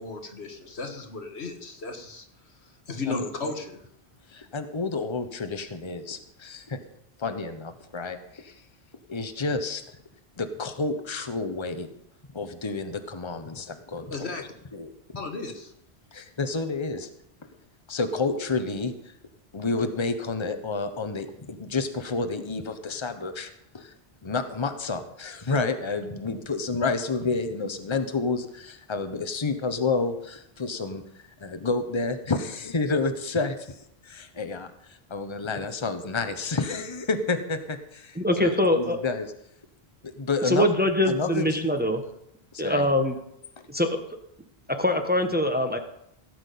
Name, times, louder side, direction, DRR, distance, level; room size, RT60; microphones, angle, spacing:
voice 1, 0.0-2.2 2.9-3.8 14.1-14.4 15.2-15.7, left 3 dB, 85° left, 4 dB, 2.1 m, -34 dB
voice 2, 4.3-6.8 7.2-8.6 9.1-9.8 10.4-11.9 12.3-14.9 16.1-17.1 17.9-19.1 19.5-23.9 24.2-31.0 31.4-33.8 34.0-39.3 40.0-40.8 41.1-41.7 42.5-42.9 43.6-43.7, left 3 dB, 30° left, 8 dB, 1.1 m, -30 dB
voice 3, 38.2-39.0 40.5-42.0 42.6-43.1 43.7-43.9 44.8-45.8, left 1 dB, 10° right, 5 dB, 1.1 m, -23 dB
16.5 x 6.1 x 8.5 m, 0.75 s
omnidirectional pair, 1.1 m